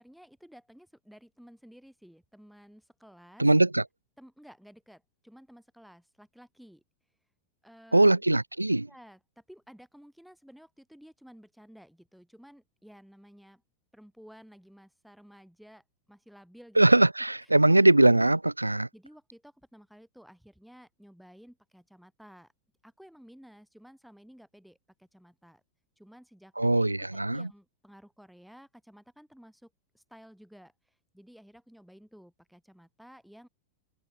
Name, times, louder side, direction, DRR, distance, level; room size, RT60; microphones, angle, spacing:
voice 1, 0.0-3.5 4.2-6.8 7.6-8.2 8.9-13.6 13.9-16.8 18.9-22.5 22.8-25.6 26.0-30.7 31.1-33.5, equal, ahead, 7.8 m, -54 dB
voice 2, 3.4-3.8 7.9-8.8 16.8-18.9 26.6-27.5, right 2 dB, 85° right, 1.0 m, -21 dB
figure-of-eight pair, 90°, 0 cm